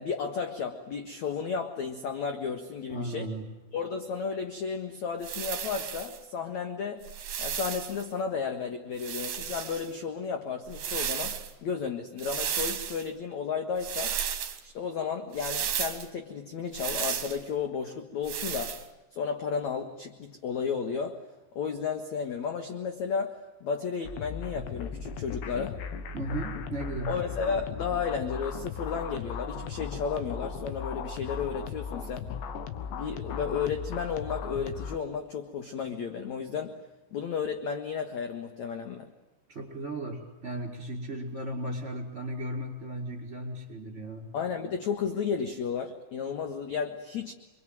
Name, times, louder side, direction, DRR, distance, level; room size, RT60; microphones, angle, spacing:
voice 1, 0.0-3.3 3.7-7.1 7.4-14.2 14.6-18.8 19.1-21.2 21.6-25.8 27.1-32.3 32.9-36.8 37.1-39.1 44.3-47.3, left 6 dB, 55° left, 6 dB, 2.2 m, -33 dB
voice 2, 2.9-3.5 26.1-27.2 39.5-44.3, right 1 dB, 15° right, 1 dB, 5.6 m, -36 dB
sound 1, 5.2-6.2 7.0-8.0 9.0-9.9 10.7-11.5 12.2-13.1 13.8-14.6 15.3-16.1 16.7-17.4 18.2-18.8, right 9 dB, 55° right, 2.8 m, -33 dB
sound 2, 24.0-35.0, left 6 dB, 85° left, 3.8 m, -37 dB
27.0 x 24.0 x 9.2 m, 1.0 s
omnidirectional pair, 5.1 m